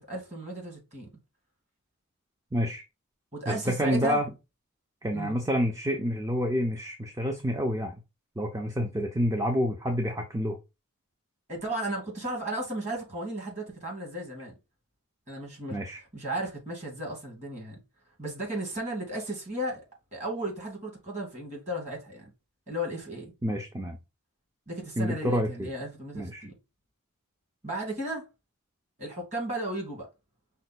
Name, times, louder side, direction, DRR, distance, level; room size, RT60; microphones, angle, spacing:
voice 1, 0.1-1.1 3.3-4.2 5.1-5.4 11.5-14.5 15.3-15.8 16.1-17.8 18.2-19.8 20.1-22.3 22.7-23.3 24.7-26.5 27.6-28.2 29.0-30.1, right 1 dB, 30° right, 1.9 m, -34 dB
voice 2, 2.5-2.8 3.5-4.3 5.0-8.0 8.4-10.6 15.7-16.0 23.4-24.0 25.0-25.7 26.1-26.5, equal, 15° right, 0.5 m, -28 dB
5.3 x 2.2 x 4.0 m
head